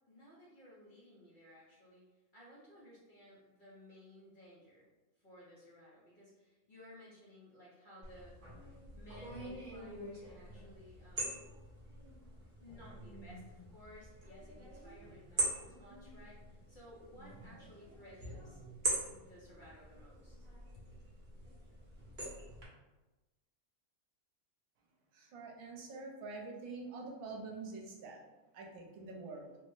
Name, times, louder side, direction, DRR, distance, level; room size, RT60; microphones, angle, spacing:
voice 1, 0.1-2.0 2.3-4.9 5.2-8.5 8.9-11.4 12.6-18.6 19.2-20.5 20.7-20.8, left 1 dB, 50° left, -7 dB, 0.6 m, -57 dB
sound 1, 8.0-22.6, right 2 dB, 40° right, 0.9 m, -43 dB
voice 2, 25.1-28.2 28.5-29.4, right 3 dB, 75° right, 0 dB, 1.1 m, -46 dB
3.3 x 2.0 x 3.0 m, 1.1 s
omnidirectional pair, 1.5 m